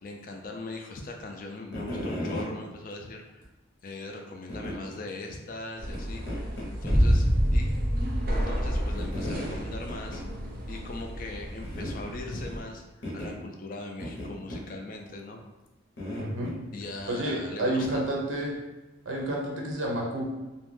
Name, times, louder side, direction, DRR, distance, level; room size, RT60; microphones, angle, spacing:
voice 1, 0.0-3.4 3.8-7.7 8.3-10.2 10.7-15.4 16.7-18.0, left 2 dB, 45° left, 3 dB, 0.3 m, -40 dB
sound 1, 1.7-2.5 3.4-3.5 4.5-4.8 5.9-6.0 6.3-7.0 7.3-7.4 9.0-9.6 9.9-10.2 10.5-10.6 10.9-11.0 11.6-12.0 13.0-13.3 14.0-14.6 16.0-16.5 17.8-17.9, equal, 65° left, 0.7 m, -35 dB
sound 2, 5.8-12.6, equal, 45° right, 0.4 m, -35 dB
sound 3, 6.8-9.8, equal, 10° right, 0.7 m, -25 dB
voice 2, 16.2-16.5 17.1-18.6 19.1-20.3, right 1 dB, 90° right, -1 dB, 0.6 m, -30 dB
2.4 x 2.1 x 3.2 m, 1.1 s
head